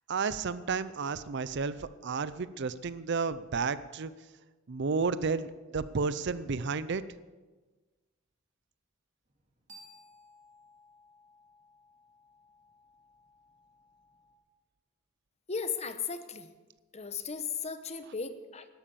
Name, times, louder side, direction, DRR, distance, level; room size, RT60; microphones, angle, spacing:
voice 1, 0.1-4.1 4.7-7.0, right 4 dB, 60° right, 15 dB, 0.6 m, -32 dB
sound 1, 9.3-14.4, left 1 dB, 35° right, 2.4 m, -59 dB
voice 2, 15.5-16.5 16.9-18.7, left 5 dB, 35° left, 11 dB, 1.0 m, -36 dB
13.0 x 12.0 x 6.9 m, 1.3 s
head